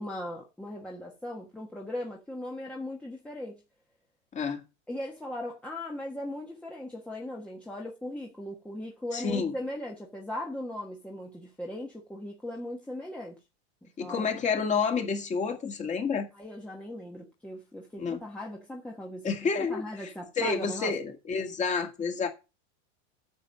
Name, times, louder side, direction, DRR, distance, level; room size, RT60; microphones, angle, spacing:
voice 1, 0.0-3.6 4.9-13.4 13.8-14.3 16.3-19.3 19.6-20.9, left 1 dB, 5° left, 1.3 m, -38 dB
voice 2, 4.3-4.6 9.1-9.5 14.0-16.3 18.0-18.2 19.2-20.1 20.4-22.3, left 5 dB, 20° left, 2.0 m, -29 dB
9.2 x 6.1 x 7.0 m
supercardioid pair, 155°, 36 cm